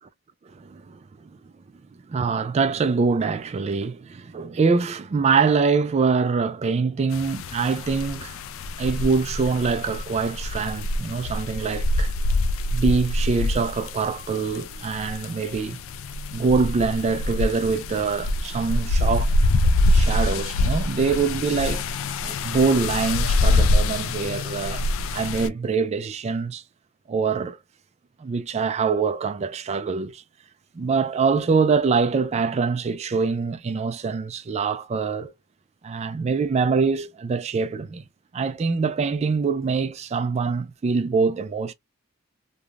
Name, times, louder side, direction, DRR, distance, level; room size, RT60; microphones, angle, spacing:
voice 1, 0.6-1.0 2.1-8.4 8.8-12.1 12.7-15.8 16.3-19.3 19.9-21.8 22.2-24.9 25.1-26.6 27.1-27.6 28.2-30.2 30.8-35.3 35.8-38.0 38.3-41.7, right 5 dB, 30° right, 0.3 m, -24 dB
sound 1, 7.1-25.5, left 2 dB, 65° left, 0.4 m, -25 dB
3.3 x 2.2 x 2.4 m
head